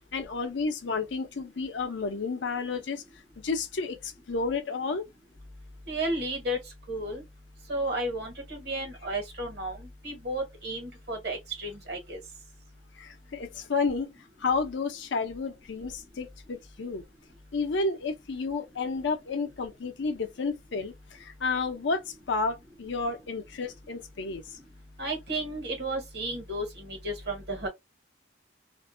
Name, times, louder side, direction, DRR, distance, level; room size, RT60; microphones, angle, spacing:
voice 1, 0.1-3.0 3.4-5.0 13.0-14.1 14.4-17.0 17.5-20.9 21.4-22.0 22.3-24.4, left 4 dB, 75° left, 0.6 m, -31 dB
voice 2, 5.9-6.6 6.9-7.2 7.7-12.2 25.0-27.7, right 1 dB, 60° right, 1.2 m, -33 dB
2.5 x 2.1 x 2.5 m
head